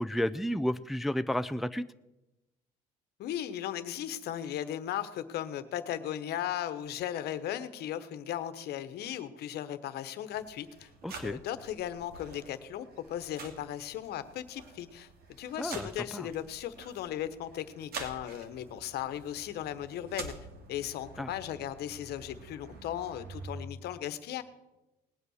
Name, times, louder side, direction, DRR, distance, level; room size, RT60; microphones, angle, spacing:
voice 1, 0.0-1.8 11.0-11.4 15.6-15.9 16.1-16.3 21.2-21.3, equal, ahead, 12 dB, 0.4 m, -31 dB
voice 2, 3.2-10.9 11.2-15.1 15.4-20.3 20.7-24.4, left 11 dB, 75° left, 12 dB, 1.1 m, -37 dB
sound 1, 10.3-23.6, right 4 dB, 65° right, 2.4 m, -48 dB
19.0 x 8.3 x 6.4 m, 1.0 s
cardioid pair, 110°, 17 cm